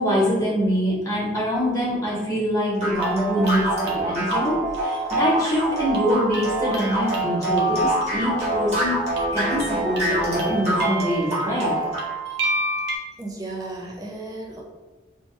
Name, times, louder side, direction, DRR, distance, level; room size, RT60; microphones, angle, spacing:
voice 1, 0.0-9.0 9.3-11.7, equal, 15° left, -8 dB, 1.0 m, -24 dB
sound 1, 2.8-12.1, right 1 dB, 35° right, 0.9 m, -25 dB
sound 2, 2.9-13.0, right 1 dB, 65° right, 0.6 m, -32 dB
voice 2, 13.2-14.6, right 2 dB, 20° right, -1 dB, 0.4 m, -34 dB
2.9 x 2.1 x 3.0 m, 1.2 s
head